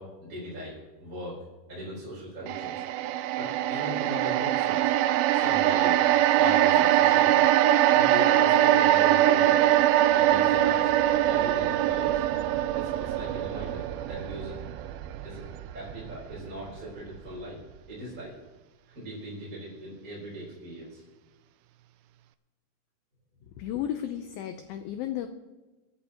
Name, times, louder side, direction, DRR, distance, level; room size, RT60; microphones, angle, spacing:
voice 1, 0.0-1.4 1.7-2.8 3.4-6.0 6.4-7.4 7.8-9.6 10.1-10.9 11.2-12.3 12.7-14.6 15.2-15.4 15.7-17.6 17.9-18.3 18.9-21.0, right 1 dB, 20° right, -7 dB, 4.3 m, -38 dB
sound 1, 2.5-16.8 17.2-17.3, right 13 dB, 85° right, 2.1 m, -23 dB
voice 2, 23.6-25.3, left 11 dB, 80° left, 7 dB, 2.2 m, -33 dB
24.5 x 11.0 x 3.0 m, 1.2 s
omnidirectional pair, 4.8 m